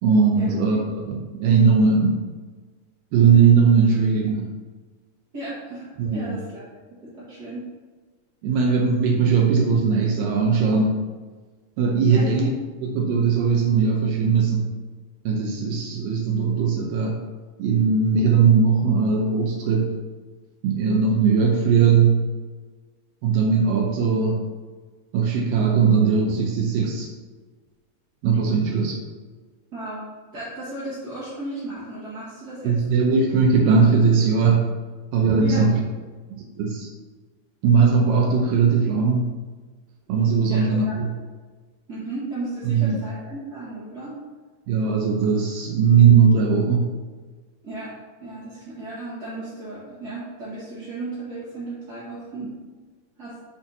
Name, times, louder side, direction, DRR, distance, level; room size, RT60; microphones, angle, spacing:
voice 1, 0.0-2.3 3.1-4.5 6.0-6.4 8.4-11.0 11.8-12.5 12.8-14.7 15.3-17.2 17.6-20.0 20.6-22.2 23.2-24.5 25.1-27.1 28.2-29.0 32.6-34.7 35.1-35.8 36.3-36.9 37.6-39.3 40.1-41.1 42.7-43.0 44.7-46.9, right 5 dB, 85° right, -1 dB, 2.4 m, -19 dB
voice 2, 5.3-6.7 7.2-7.6 12.1-12.3 29.7-30.1 30.3-32.7 35.4-35.6 40.5-41.1 41.9-44.2 47.6-48.0 48.2-52.5 53.2-53.4, right 2 dB, 35° right, -10 dB, 1.8 m, -35 dB
8.1 x 4.4 x 4.2 m, 1.4 s
omnidirectional pair, 3.9 m